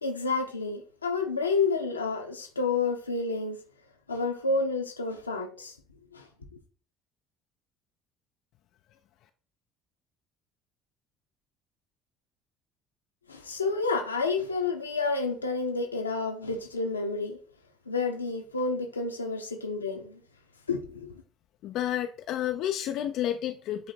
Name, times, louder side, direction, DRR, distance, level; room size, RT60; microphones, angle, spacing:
voice 1, 0.0-3.6 4.1-5.8 6.1-6.3 13.3-17.4 17.9-20.2 20.7-21.1, left 4 dB, 80° left, 0.9 m, -30 dB
voice 2, 21.6-23.9, left 11 dB, 55° left, 0.5 m, -30 dB
8.5 x 3.6 x 4.4 m
figure-of-eight pair, 55°, 0 cm